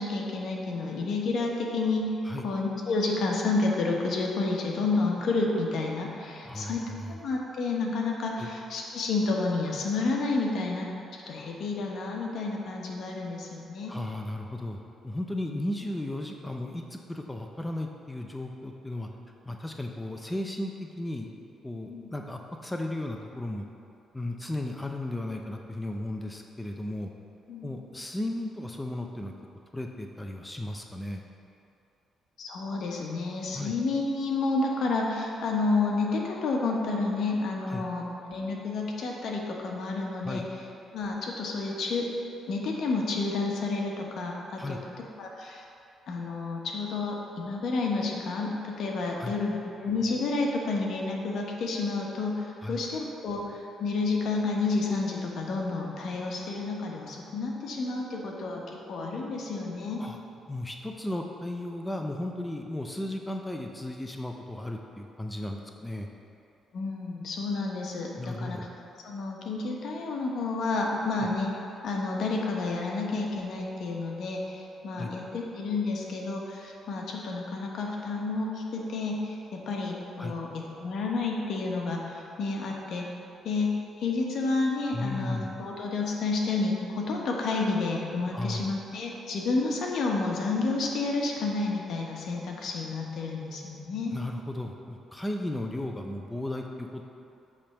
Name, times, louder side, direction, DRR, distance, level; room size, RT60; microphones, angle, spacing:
voice 1, 0.0-2.1 2.4-13.9 21.9-22.1 27.5-27.7 32.4-40.4 40.9-42.1 42.5-44.8 45.2-45.6 46.1-60.0 66.7-68.7 69.0-71.5 71.8-83.1 83.4-94.2, left 3 dB, 70° left, -1 dB, 1.1 m, -30 dB
voice 2, 6.4-7.1 8.4-8.5 13.9-14.8 15.0-19.1 19.5-21.3 21.6-23.6 24.1-27.1 27.6-29.3 29.7-31.2 33.5-33.7 37.6-37.8 40.2-40.4 44.6-44.8 49.1-49.3 52.6-52.8 60.0-60.2 60.5-66.1 68.2-68.7 75.0-75.1 80.2-80.3 84.9-85.5 88.3-88.7 94.1-97.0, left 1 dB, 10° left, 2 dB, 0.6 m, -35 dB
8.6 x 3.5 x 6.5 m, 2.7 s
cardioid pair, 90°, 0 cm